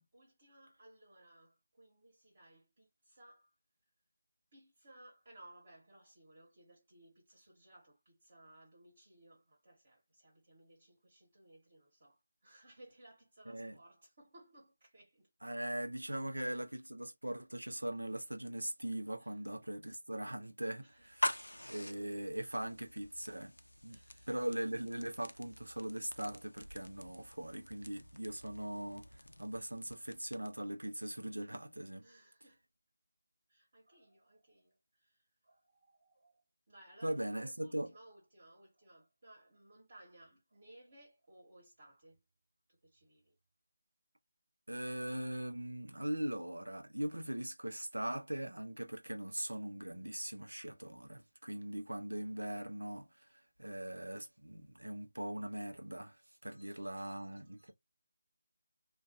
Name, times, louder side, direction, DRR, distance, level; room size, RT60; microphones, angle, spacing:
voice 1, 0.1-3.5 4.5-15.3 19.2-19.4 20.8-21.1 23.9-24.4 31.9-32.6 33.5-42.2 42.7-43.4 56.4-57.7, right 1 dB, 40° right, 1.4 m, -61 dB
voice 2, 13.5-13.8 15.4-21.4 21.7-23.5 23.8-24.0 24.3-32.0 37.0-37.9 44.7-57.7, right 1 dB, 80° right, 0.7 m, -40 dB
sound 1, 21.0-30.7, left 1 dB, 80° left, 0.4 m, -45 dB
2.5 x 2.4 x 2.5 m
figure-of-eight pair, 160°, 0 cm